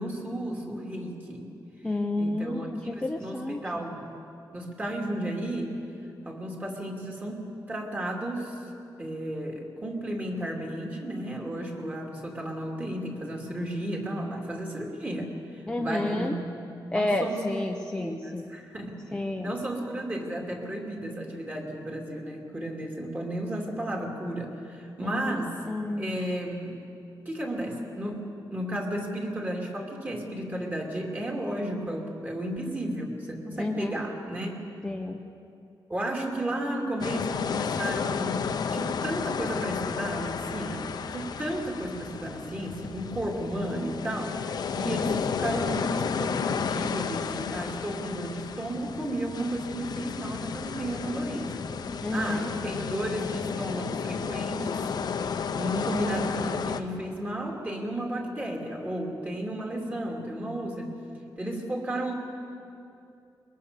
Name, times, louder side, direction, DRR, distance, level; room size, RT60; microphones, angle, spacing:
voice 1, 0.0-1.5 2.2-4.1 4.5-5.7 6.3-8.7 9.0-16.4 16.9-17.4 17.9-19.0 19.4-25.6 26.0-26.8 27.2-28.2 28.5-34.7 35.9-51.7 52.1-54.8 55.5-60.9 61.4-62.1, right 1 dB, 20° right, 0 dB, 2.7 m, -33 dB
voice 2, 1.8-3.6 15.7-16.3 16.9-18.4 19.1-19.5 25.0-25.4 25.7-26.2 33.6-34.0 34.8-35.2 52.0-52.5, left 2 dB, 10° left, 2 dB, 0.8 m, -30 dB
sound 1, 37.0-56.8, left 6 dB, 55° left, 0.9 m, -32 dB
22.5 x 21.5 x 6.7 m, 2.7 s
wide cardioid pair, 175°, 8 cm